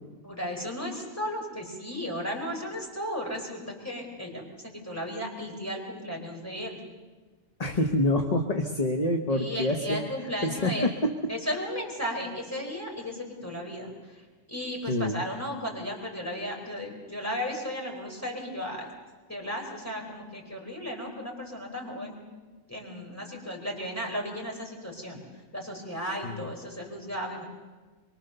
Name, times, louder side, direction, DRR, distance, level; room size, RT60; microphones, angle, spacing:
voice 1, 0.2-6.8 9.3-10.9 11.3-18.9 19.3-22.2 22.7-25.2 25.5-27.4, equal, 10° left, 0 dB, 4.7 m, -35 dB
voice 2, 7.6-11.1 14.9-15.2 26.2-26.5, left 1 dB, 30° left, 4 dB, 1.1 m, -27 dB
24.0 x 23.5 x 6.8 m, 1.3 s
omnidirectional pair, 1.6 m